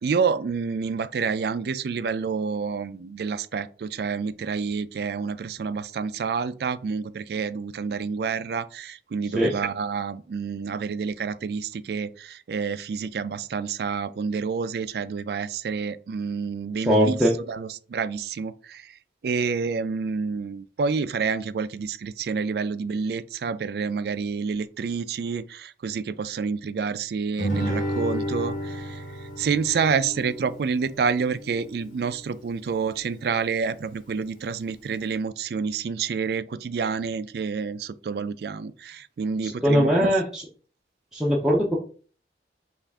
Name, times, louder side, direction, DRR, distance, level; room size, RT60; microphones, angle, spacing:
voice 1, 0.0-17.2 17.5-40.1, right 5 dB, 65° right, 0.3 m, -28 dB
voice 2, 16.8-17.3 39.4-40.5 41.1-41.8, equal, 5° right, 0.6 m, -21 dB
Guitar, 27.4-32.4, equal, 45° left, 1.5 m, -32 dB
5.5 x 2.5 x 3.5 m
head